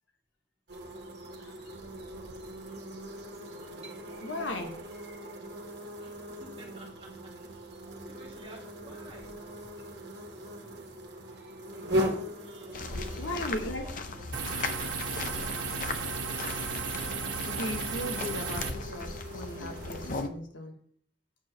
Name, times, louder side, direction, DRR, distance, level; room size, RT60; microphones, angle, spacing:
sound 1, 0.7-20.2, equal, 60° right, 1.4 m, -40 dB
voice 1, 4.2-4.7 13.2-13.9 17.5-20.8, left 1 dB, 85° left, 3 dB, 1.4 m, -37 dB
voice 2, 6.0-7.7 8.0-9.3 11.4-11.6 12.4-14.0, right 1 dB, 30° right, -2 dB, 1.9 m, -53 dB
sound 2, 12.7-20.3, left 3 dB, 45° left, 0.6 m, -38 dB
sound 3, 14.3-18.7, right 5 dB, 85° right, 1.2 m, -35 dB
7.4 x 4.5 x 6.2 m, 0.62 s
head